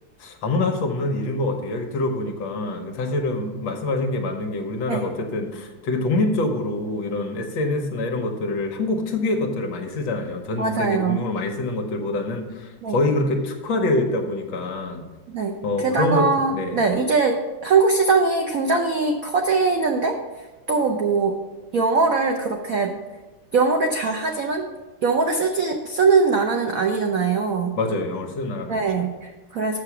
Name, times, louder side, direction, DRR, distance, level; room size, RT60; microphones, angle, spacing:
voice 1, 0.2-15.0 15.6-16.8 27.8-28.9, left 2 dB, 65° left, 3 dB, 1.7 m, -25 dB
voice 2, 10.6-11.2 12.8-13.0 15.3-21.4 21.7-23.0 23.5-24.7 25.0-27.8 28.7-29.8, right 4 dB, 80° right, 3 dB, 0.7 m, -22 dB
6.8 x 6.6 x 5.9 m, 1.2 s
omnidirectional pair, 2.3 m